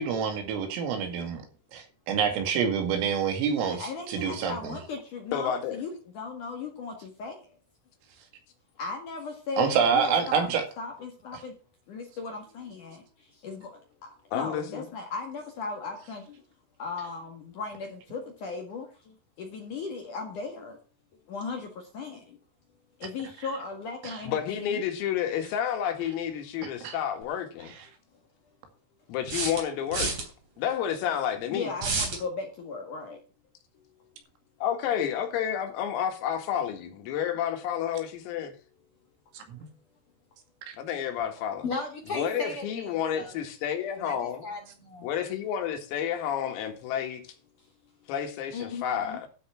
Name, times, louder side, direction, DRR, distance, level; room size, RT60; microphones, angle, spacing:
voice 1, 0.0-1.4 1.7-4.7 9.6-10.6 24.0-24.1 26.8-27.0 39.3-39.6 40.7-40.8, right 6 dB, 80° right, 4.8 m, -27 dB
voice 2, 3.7-7.4 8.8-10.5 10.8-11.5 11.9-13.0 13.4-13.7 14.0-16.4 16.8-18.9 19.4-20.8 21.3-22.4 23.0-24.8 31.5-33.2 48.5-49.2, left 4 dB, 60° left, 2.3 m, -37 dB
voice 3, 5.3-5.8 14.3-14.9 24.2-27.7 29.1-30.2 30.6-31.7 34.6-38.6 40.8-41.6 42.1-44.4 45.0-47.2 48.1-49.3, left 9 dB, 85° left, 4.6 m, -30 dB
sound 1, 27.2-27.3 29.3-30.3 31.8-32.2, right 3 dB, 40° right, 4.1 m, -29 dB
voice 4, 41.6-43.3 44.0-45.1, left 3 dB, 45° left, 2.0 m, -36 dB
12.5 x 7.1 x 5.8 m
omnidirectional pair, 6.0 m